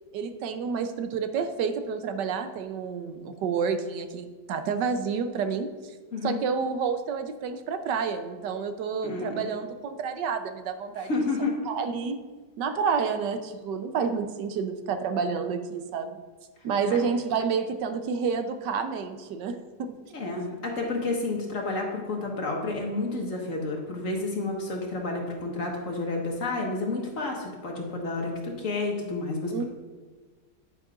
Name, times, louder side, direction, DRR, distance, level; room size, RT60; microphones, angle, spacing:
voice 1, 0.1-5.9 6.2-11.1 11.7-12.2 12.6-16.2 16.6-20.0 29.5-29.6, right 6 dB, 80° right, 8 dB, 1.3 m, -29 dB
voice 2, 9.0-9.4 11.0-11.5 20.1-29.6, left 3 dB, 45° left, 0 dB, 1.8 m, -30 dB
9.8 x 9.3 x 2.5 m, 1.4 s
omnidirectional pair, 1.9 m